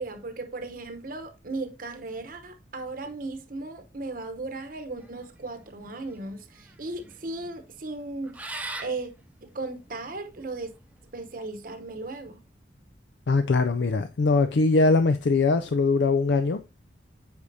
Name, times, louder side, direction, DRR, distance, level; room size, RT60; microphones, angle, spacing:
voice 1, 0.0-8.4 8.8-9.1 9.4-10.7 11.1-12.4, right 3 dB, 50° right, 0.9 m, -36 dB
sound 1, 5.0-10.8, right 2 dB, 10° right, 0.6 m, -42 dB
voice 2, 13.3-16.6, left 3 dB, 70° left, 0.4 m, -22 dB
8.3 x 4.9 x 2.7 m
head